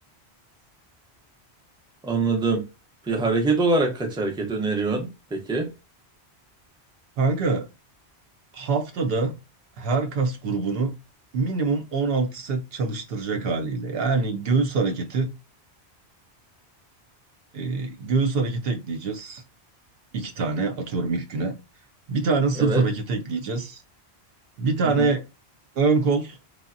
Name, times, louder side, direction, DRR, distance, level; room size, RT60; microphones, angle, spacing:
voice 1, 2.0-2.6 3.1-5.7 22.6-22.8 24.8-25.1, right 3 dB, 5° right, 0.5 m, -24 dB
voice 2, 7.2-7.7 8.5-9.4 9.8-10.9 11.3-15.3 17.5-19.4 20.1-21.6 22.1-23.8 24.6-25.3 25.8-26.4, right 4 dB, 70° right, 0.7 m, -24 dB
3.4 x 2.0 x 2.4 m
omnidirectional pair, 1.1 m